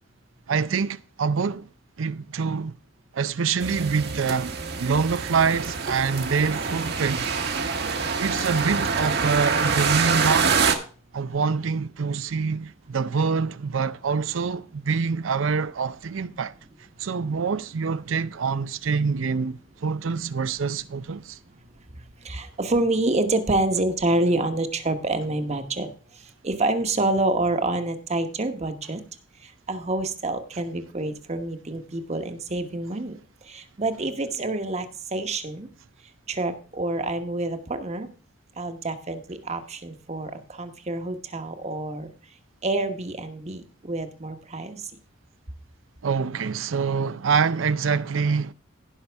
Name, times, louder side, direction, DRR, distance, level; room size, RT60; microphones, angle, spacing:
voice 1, 0.5-1.7 2.0-2.7 3.1-7.3 8.2-10.6 11.1-16.5 17.0-21.4 46.0-48.5, right 5 dB, 80° right, 0.5 m, -25 dB
sound 1, 3.6-10.7, right 5 dB, 55° right, 1.3 m, -25 dB
voice 2, 22.2-25.9 26.2-29.0 29.4-33.2 33.5-35.7 36.3-38.1 38.6-42.1 42.6-44.8, right 2 dB, 35° right, 1.1 m, -27 dB
17.0 x 5.6 x 3.4 m
head